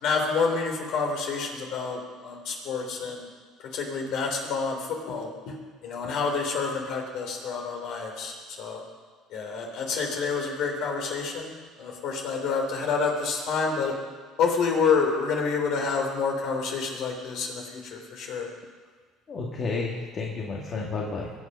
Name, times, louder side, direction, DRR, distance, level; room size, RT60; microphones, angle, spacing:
voice 1, 0.0-3.2 3.7-5.5 5.8-8.8 9.3-11.5 11.8-13.9 14.4-18.5, left 5 dB, 65° left, 1 dB, 3.7 m, -28 dB
voice 2, 19.3-21.3, left 4 dB, 45° left, -2 dB, 2.1 m, -31 dB
22.0 x 8.3 x 5.6 m, 1.5 s
hypercardioid pair, 75°, 0 cm